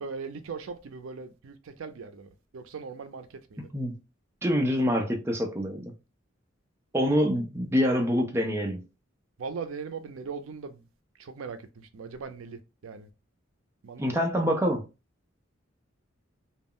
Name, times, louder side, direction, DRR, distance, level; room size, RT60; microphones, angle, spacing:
voice 1, 0.0-3.7 9.4-10.8 11.2-13.1 13.8-14.1, right 5 dB, 85° right, 0.4 m, -39 dB
voice 2, 3.6-4.0 4.4-5.9 6.9-8.8 14.0-14.9, equal, 15° right, 0.4 m, -26 dB
2.3 x 2.0 x 3.6 m
head